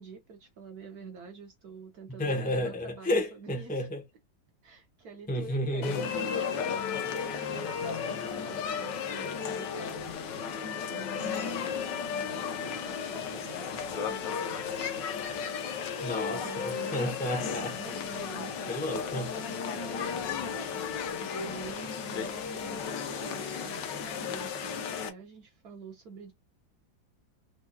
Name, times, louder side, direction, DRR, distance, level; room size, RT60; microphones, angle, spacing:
voice 1, 0.0-3.9 4.6-6.2 7.3-10.1 10.5-17.2 17.8-18.9 19.7-26.3, right 5 dB, 60° right, 1.2 m, -48 dB
voice 2, 2.2-4.0 5.3-6.1 16.0-18.0 18.7-19.3, left 1 dB, 15° left, 0.3 m, -31 dB
sound 1, 5.8-25.1, left 6 dB, 70° left, 1.4 m, -34 dB
4.6 x 2.8 x 2.3 m
omnidirectional pair, 2.1 m